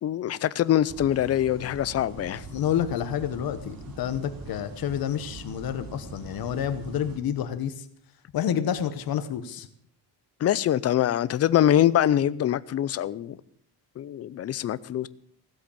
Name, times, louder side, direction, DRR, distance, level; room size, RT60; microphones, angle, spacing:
voice 1, 0.0-2.4 10.4-13.4 14.0-15.1, left 11 dB, 35° left, 0.5 m, -24 dB
sound 1, 0.9-7.2, right 3 dB, 55° right, 2.8 m, -42 dB
voice 2, 2.5-7.8 8.3-9.7, left 9 dB, 60° left, 1.1 m, -29 dB
16.0 x 7.9 x 8.4 m
cardioid pair, 175°, 41 cm